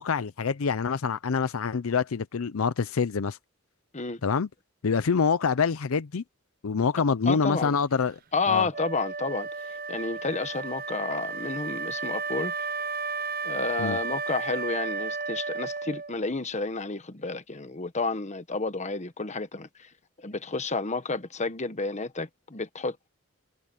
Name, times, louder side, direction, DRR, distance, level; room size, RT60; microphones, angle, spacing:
voice 1, 0.0-3.4 4.2-4.5 4.8-6.2 6.6-8.2 8.5-8.7 13.8-14.0, left 5 dB, 70° left, 0.6 m, -26 dB
voice 2, 7.3-7.8 8.3-12.5 13.4-19.9 20.2-23.1, left 3 dB, 35° left, 1.2 m, -31 dB
Wind instrument woodwind instrument, 8.7-16.3, right 4 dB, 45° right, 0.8 m, -33 dB
head